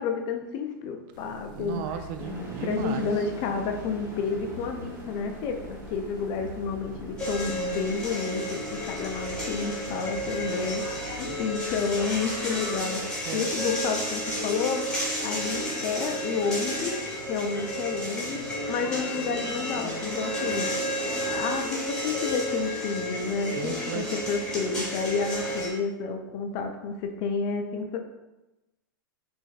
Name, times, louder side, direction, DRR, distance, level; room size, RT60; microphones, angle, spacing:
voice 1, 0.0-1.8 2.3-14.8 15.2-16.9 17.3-18.4 18.7-20.7 21.3-28.0, left 5 dB, 45° left, 4 dB, 0.5 m, -30 dB
sound 1, 1.1-13.0, left 1 dB, 75° right, 1.0 m, -46 dB
voice 2, 1.5-3.1 11.2-11.4 13.3-13.5 23.6-24.2, right 9 dB, 45° right, 8 dB, 0.4 m, -35 dB
sound 2, 2.2-15.6, right 2 dB, 20° right, 0.9 m, -46 dB
sound 3, 7.2-25.7, equal, 5° left, 1.4 m, -32 dB
5.1 x 2.6 x 2.4 m, 1.0 s
hypercardioid pair, 100°, 11 cm